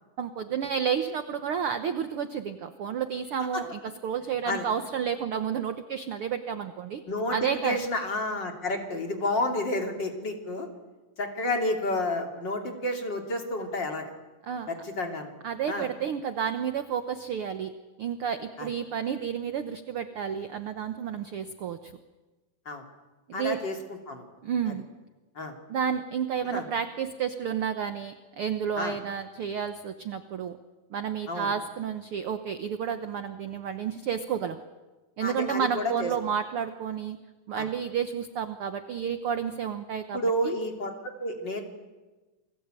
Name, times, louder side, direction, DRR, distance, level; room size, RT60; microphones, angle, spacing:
voice 1, 0.2-7.0 7.3-7.8 14.5-14.7 15.4-17.7 18.0-21.9 23.3-23.6 24.4-24.9 25.7-30.6 30.9-34.6 35.2-37.2 37.5-40.5, right 7 dB, 65° right, 9 dB, 1.4 m, -31 dB
voice 2, 7.1-10.7 11.2-14.1 14.7-15.3 15.7-15.9 18.6-18.7 22.6-22.8 23.3-24.3 25.3-25.5 26.4-26.6 28.8-29.0 31.3-31.5 35.2-36.1 37.6-37.7 40.1-40.9 41.2-41.6, left 1 dB, 35° left, 4 dB, 3.2 m, -30 dB
29.0 x 21.5 x 9.0 m, 1.2 s
omnidirectional pair, 3.8 m